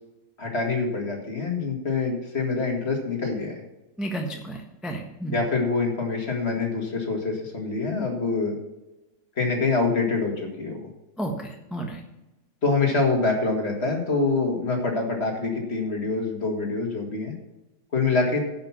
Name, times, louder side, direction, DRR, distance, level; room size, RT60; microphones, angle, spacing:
voice 1, 0.4-3.6 5.3-8.6 9.4-10.8 12.6-17.3 17.9-18.4, left 3 dB, 40° left, 1 dB, 2.3 m, -25 dB
voice 2, 4.0-5.4 11.2-12.0, right 1 dB, ahead, 1 dB, 1.0 m, -32 dB
10.5 x 5.9 x 7.1 m, 0.99 s
omnidirectional pair, 1.8 m